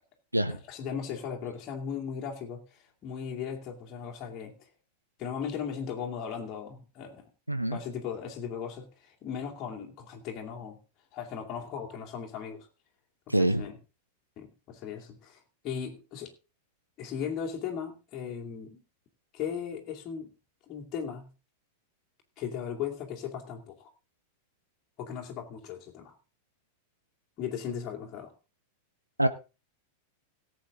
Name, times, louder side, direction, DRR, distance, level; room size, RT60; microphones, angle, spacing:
voice 1, 0.5-2.6 3.0-4.6 5.2-7.3 7.7-8.9 9.2-10.8 11.1-12.7 13.3-13.8 14.4-16.3 17.0-18.8 19.3-20.3 20.7-21.3 22.4-23.9 25.0-26.1 27.4-28.3, left 7 dB, 35° left, 0 dB, 2.7 m, -37 dB
voice 2, 7.5-7.8 13.3-13.6 29.2-29.3, right 1 dB, 85° right, 11 dB, 0.9 m, -25 dB
17.5 x 8.0 x 3.8 m, 0.31 s
figure-of-eight pair, 90°, 0 cm